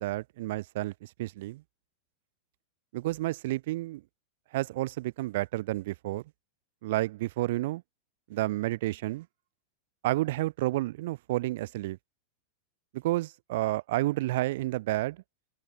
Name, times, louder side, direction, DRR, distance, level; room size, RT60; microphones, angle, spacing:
voice 1, 0.0-1.6 2.9-4.0 4.5-6.2 6.8-7.8 8.3-9.3 10.0-12.0 12.9-15.2, right 17 dB, 60° right, 3.9 m, -30 dB
supercardioid pair, 160°, 0 cm